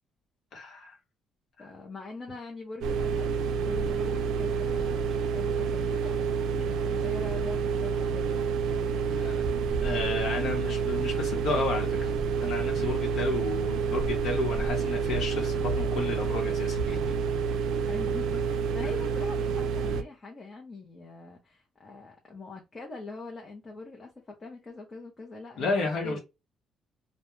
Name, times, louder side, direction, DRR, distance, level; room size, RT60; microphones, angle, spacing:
voice 1, 0.5-0.9 1.6-1.7 6.5-6.6 9.2-9.3 9.8-12.1 12.4-17.1 25.6-26.2, left 3 dB, 70° left, 0.8 m, -32 dB
voice 2, 1.6-6.3 6.6-9.4 17.9-26.2, left 3 dB, 25° left, 0.6 m, -43 dB
sound 1, 2.8-20.0, right 6 dB, 90° right, 0.3 m, -28 dB
2.3 x 2.1 x 2.9 m
cardioid pair, 120°, 0 cm